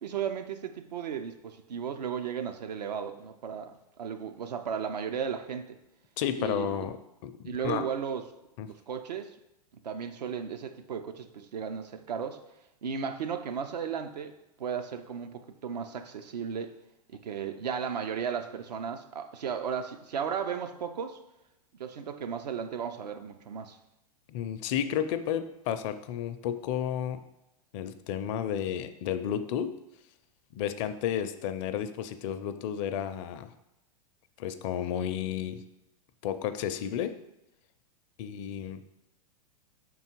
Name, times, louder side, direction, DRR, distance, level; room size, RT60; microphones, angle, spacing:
voice 1, 0.0-5.8 6.4-6.8 7.4-8.2 8.6-9.3 9.8-12.4 12.8-16.8 17.1-21.2 21.8-23.8, right 7 dB, 85° right, 7 dB, 0.6 m, -35 dB
voice 2, 6.2-7.0 7.2-7.8 8.6-8.7 24.3-27.2 27.7-29.7 30.5-33.5 34.4-35.6 36.2-37.1 38.2-38.8, left 9 dB, 50° left, 10 dB, 0.5 m, -32 dB
5.6 x 3.9 x 4.5 m, 0.90 s
hypercardioid pair, 110°, 21 cm